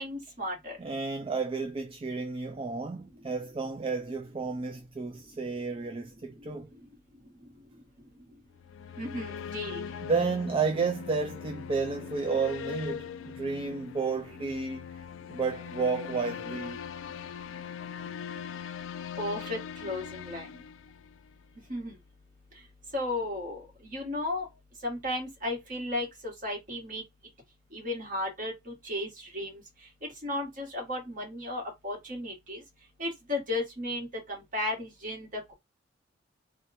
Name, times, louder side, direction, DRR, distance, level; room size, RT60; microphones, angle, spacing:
voice 1, 0.0-0.8 9.0-9.8 19.2-20.5 21.7-21.9 22.9-23.6 23.9-24.5 24.8-27.0 27.7-29.6 30.2-32.6 33.0-35.5, left 1 dB, 45° right, 1.6 m, -34 dB
voice 2, 0.8-6.7 10.0-14.9 15.3-16.8, right 4 dB, 30° right, 0.4 m, -31 dB
sound 1, 8.5-21.4, left 7 dB, 85° left, 0.4 m, -41 dB
3.4 x 2.2 x 4.2 m
head